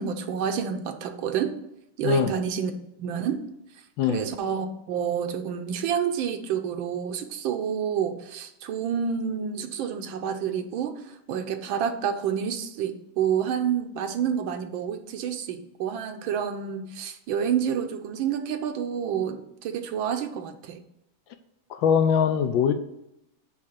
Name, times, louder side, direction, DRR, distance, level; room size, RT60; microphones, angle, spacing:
voice 1, 0.0-1.5 2.0-2.7 3.0-3.4 4.1-20.8, right 8 dB, 75° right, 7 dB, 1.4 m, -29 dB
voice 2, 21.7-22.7, left 7 dB, 75° left, 9 dB, 1.3 m, -22 dB
8.5 x 3.2 x 6.5 m, 0.84 s
omnidirectional pair, 2.3 m